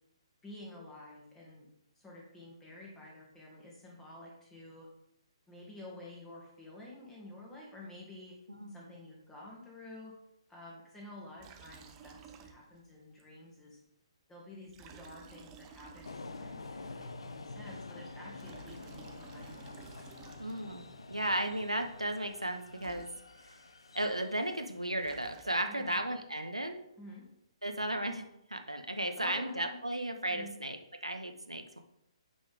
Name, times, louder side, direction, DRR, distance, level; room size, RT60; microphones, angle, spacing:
voice 1, 0.4-1.7 2.0-4.9 5.5-8.4 8.7-10.1 10.5-13.8 14.3-19.7 25.6-26.0 27.0-27.2 29.2-29.8 30.3-30.5, left 1 dB, 10° left, -4 dB, 2.2 m, -50 dB
Liquid, 11.4-12.9 13.2-13.3 14.7-16.6 18.2-20.9 22.5-22.6 22.8-23.6 24.8-25.9, right 7 dB, 20° right, 0.6 m, -54 dB
sound 1, 16.0-25.5, left 3 dB, 65° left, 0.7 m, -48 dB
voice 2, 20.4-23.1 23.9-26.8 27.6-31.8, right 1 dB, 85° right, 6 dB, 0.9 m, -35 dB
8.6 x 5.5 x 3.6 m, 0.79 s
figure-of-eight pair, 130°, 3 cm